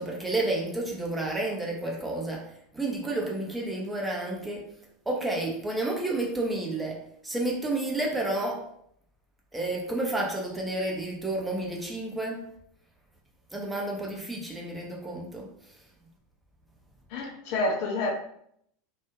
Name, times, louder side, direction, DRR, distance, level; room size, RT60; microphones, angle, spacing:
voice 1, 0.0-2.5 2.7-4.6 5.1-7.0 7.2-8.6 9.5-12.4 13.5-15.5, right 2 dB, 10° right, -2 dB, 0.8 m, -30 dB
voice 2, 17.1-18.1, left 2 dB, 55° left, 1 dB, 0.5 m, -28 dB
2.5 x 2.2 x 3.0 m, 0.69 s
figure-of-eight pair, 80°, 0 cm